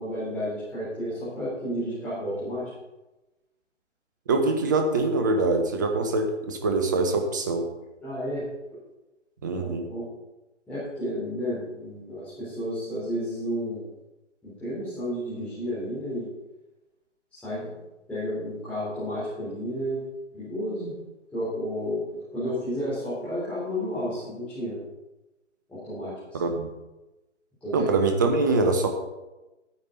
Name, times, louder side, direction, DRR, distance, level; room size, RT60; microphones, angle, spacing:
voice 1, 0.0-2.7 8.0-8.4 9.5-10.0 10.7-13.8 14.4-16.3 17.3-17.7 18.1-20.0 20.3-21.0 21.3-22.0 22.3-24.8 25.7-26.4 27.6-27.9, equal, 5° left, -14 dB, 3.7 m, -31 dB
voice 2, 4.3-7.7 9.4-9.9 26.3-26.7 27.7-28.9, right 3 dB, 15° right, 5 dB, 0.6 m, -24 dB
11.5 x 9.4 x 4.0 m, 1.0 s
figure-of-eight pair, 145°, 37 cm